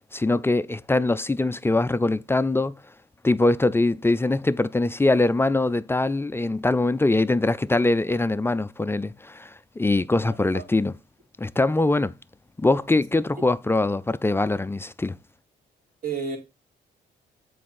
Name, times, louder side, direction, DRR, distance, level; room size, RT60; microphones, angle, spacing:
voice 1, 0.1-2.7 3.2-10.9 11.4-12.1 12.6-15.2, left 2 dB, 10° left, 0.3 m, -23 dB
voice 2, 10.2-10.6 16.0-16.4, right 5 dB, 45° right, 2.7 m, -31 dB
7.5 x 4.7 x 4.1 m
cardioid pair, 90°, 20 cm